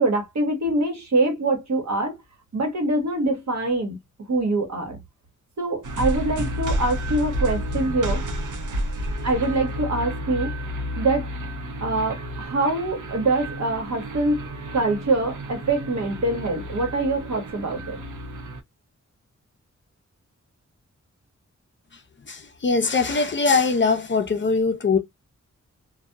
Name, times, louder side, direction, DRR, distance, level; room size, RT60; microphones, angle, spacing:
voice 1, 0.0-2.2 2.5-4.0 4.3-5.0 5.6-8.2 9.2-10.5 11.0-11.3 11.8-14.5 14.7-18.0, right 2 dB, 65° right, 1.1 m, -24 dB
sound 1, 5.8-18.6, equal, 85° right, 0.7 m, -31 dB
voice 2, 22.3-25.0, left 4 dB, 40° left, 0.5 m, -21 dB
2.7 x 2.2 x 2.2 m
wide cardioid pair, 115°, 30 cm